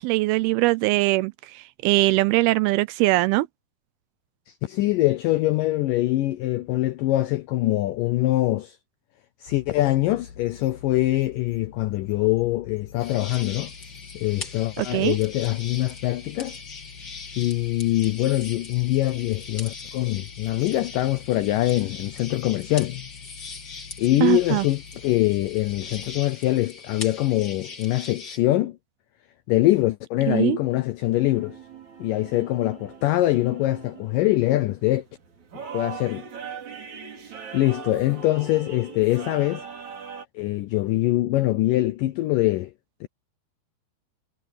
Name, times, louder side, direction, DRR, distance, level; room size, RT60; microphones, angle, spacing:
voice 1, 0.0-3.5 14.8-15.2 24.2-24.7 30.3-30.6, right 19 dB, 80° right, 2.3 m, -21 dB
voice 2, 4.5-8.8 9.4-13.7 14.1-16.6 17.4-23.1 24.0-28.8 29.5-31.6 32.0-35.0 35.7-36.3 37.5-39.7 40.4-42.7 43.0-43.1, left 16 dB, 85° left, 1.9 m, -23 dB
sound 1, 9.5-26.2, left 7 dB, 65° left, 2.0 m, -46 dB
sound 2, 13.0-28.4, left 4 dB, 30° left, 2.3 m, -41 dB
sound 3, 31.1-40.3, right 6 dB, 45° right, 4.4 m, -41 dB
omnidirectional pair, 4.7 m